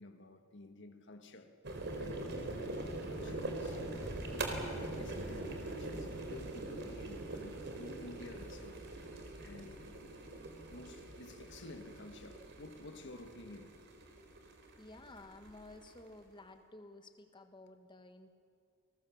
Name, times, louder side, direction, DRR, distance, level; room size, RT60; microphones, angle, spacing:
voice 1, 0.0-1.5 1.9-3.9 4.3-9.9 10.7-13.8, left 2 dB, 65° left, 1.5 m, -53 dB
sound 1, 1.6-16.1, right 2 dB, 60° right, 4.0 m, -43 dB
sound 2, 4.0-8.8, equal, 15° right, 3.8 m, -52 dB
voice 2, 14.8-18.3, left 2 dB, 25° left, 1.5 m, -54 dB
29.5 x 20.0 x 7.2 m
head